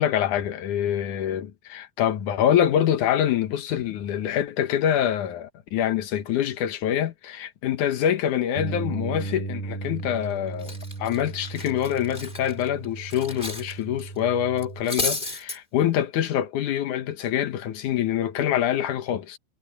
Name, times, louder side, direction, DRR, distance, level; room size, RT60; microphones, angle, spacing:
voice 1, 0.0-19.4, left 10 dB, 60° left, 2.2 m, -25 dB
Bass guitar, 8.6-14.8, right 3 dB, 45° right, 4.0 m, -35 dB
Cutlery silverware, 10.0-10.3 10.6-13.7 14.0-14.2 14.6-15.6, left 2 dB, 15° left, 2.2 m, -32 dB
omnidirectional pair, 4.8 m